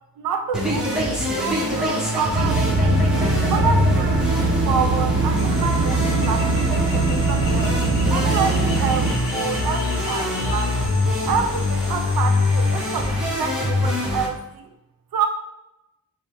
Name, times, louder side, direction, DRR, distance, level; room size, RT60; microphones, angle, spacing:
voice 1, 0.2-3.0 3.4-7.8 8.1-10.8 11.3-14.7 15.1-15.3, right 6 dB, 80° right, 6 dB, 0.7 m, -28 dB
sound 1, 0.5-14.3, left 2 dB, ahead, 0.8 m, -24 dB
sound 2, 2.3-9.1, right 3 dB, 35° right, 0.9 m, -22 dB
sound 3, 5.3-13.1, left 3 dB, 70° left, 1.0 m, -37 dB
5.2 x 2.0 x 4.4 m, 0.92 s
wide cardioid pair, 160°, 35 cm